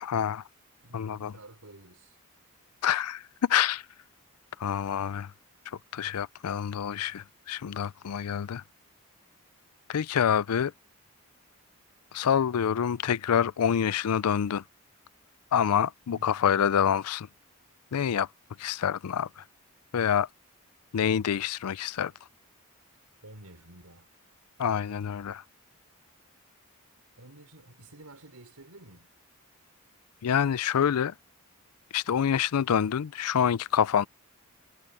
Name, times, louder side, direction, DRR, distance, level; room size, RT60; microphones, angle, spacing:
voice 1, 0.0-0.4 0.9-1.3 2.8-3.8 4.6-5.3 5.9-8.6 9.9-10.7 12.1-14.6 15.5-17.3 17.9-18.3 18.6-19.4 19.9-20.3 20.9-22.1 24.6-25.4 30.2-31.1 31.9-34.1, left 8 dB, 85° left, 0.4 m, -27 dB
voice 2, 0.8-2.2 16.1-16.5 23.2-24.1 27.2-29.1, right 2 dB, 80° right, 4.3 m, -51 dB
head